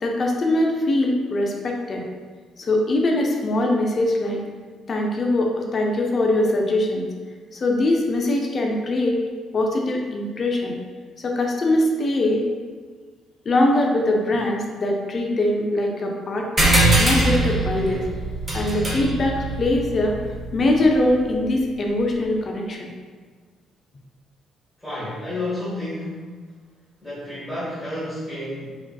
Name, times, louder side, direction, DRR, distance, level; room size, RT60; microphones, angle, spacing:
voice 1, 0.0-2.0 2.6-4.4 4.9-7.1 7.5-9.2 9.5-10.8 11.2-12.4 13.5-18.0 18.5-20.2 20.5-22.9, left 1 dB, 35° left, 1 dB, 0.4 m, -22 dB
sound 1, 16.6-21.5, right 1 dB, 25° right, 0.5 m, -22 dB
voice 2, 24.8-26.3 27.0-28.8, left 1 dB, 5° right, -12 dB, 0.9 m, -31 dB
3.2 x 2.6 x 2.2 m, 1.5 s
cardioid pair, 150°, 0 cm